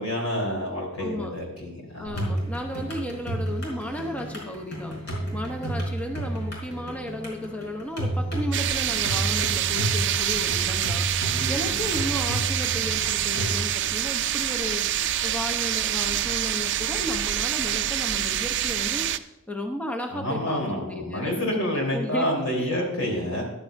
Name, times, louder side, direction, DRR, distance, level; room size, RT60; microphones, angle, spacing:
voice 1, 0.0-2.3 11.2-11.8 20.1-23.4, left 1 dB, 80° left, 0 dB, 3.7 m, -28 dB
voice 2, 1.0-1.4 1.9-5.0 5.3-11.1 11.5-14.9 15.2-19.1 19.5-22.3 22.6-22.7, left 1 dB, 5° left, 3 dB, 0.8 m, -34 dB
sound 1, 2.1-13.6, right 1 dB, 55° left, 4.1 m, -31 dB
sound 2, 8.5-19.2, right 12 dB, 55° right, 0.4 m, -26 dB
13.5 x 11.5 x 2.6 m, 0.91 s
head